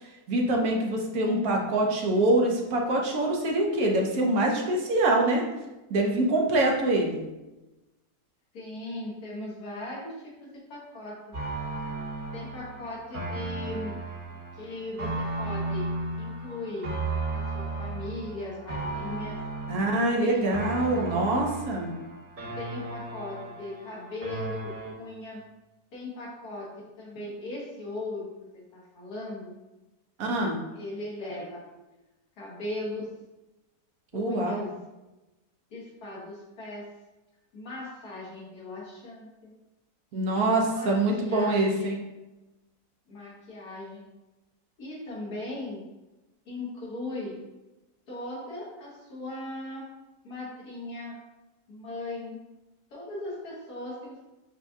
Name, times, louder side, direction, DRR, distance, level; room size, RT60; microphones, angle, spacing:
voice 1, 0.3-5.4 5.9-7.2 19.7-21.9 30.2-30.6 34.1-34.7 40.1-42.0, right 2 dB, 75° right, 0 dB, 1.2 m, -25 dB
voice 2, 8.5-11.2 12.3-14.0 14.5-15.9 16.2-16.9 17.3-19.4 20.2-21.3 22.5-25.4 25.9-29.6 30.7-31.6 32.4-33.1 34.1-34.7 35.7-36.9 37.5-39.5 40.3-40.4 40.6-42.0 43.1-44.1 44.8-45.8 46.4-47.4 48.1-49.8 50.2-51.2 51.7-52.4 52.9-54.2, left 2 dB, 85° left, -6 dB, 1.7 m, -38 dB
sound 1, 11.3-24.9, right 2 dB, 50° right, 2.0 m, -35 dB
7.2 x 2.6 x 2.3 m, 1.0 s
omnidirectional pair, 1.6 m